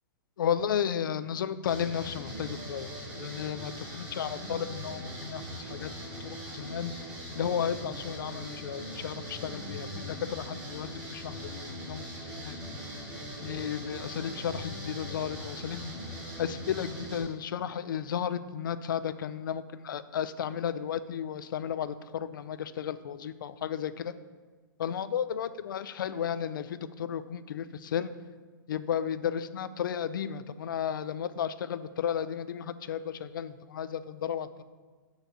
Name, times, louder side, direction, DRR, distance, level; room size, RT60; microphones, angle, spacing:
voice 1, 0.4-6.9 7.3-12.6 13.4-15.9 16.4-24.1 24.8-28.1 28.7-34.6, left 8 dB, 70° left, 14 dB, 0.5 m, -34 dB
sound 1, 1.6-17.2, equal, 5° right, 2.1 m, -41 dB
6.5 x 4.6 x 6.6 m, 1.4 s
hypercardioid pair, 165°, 11 cm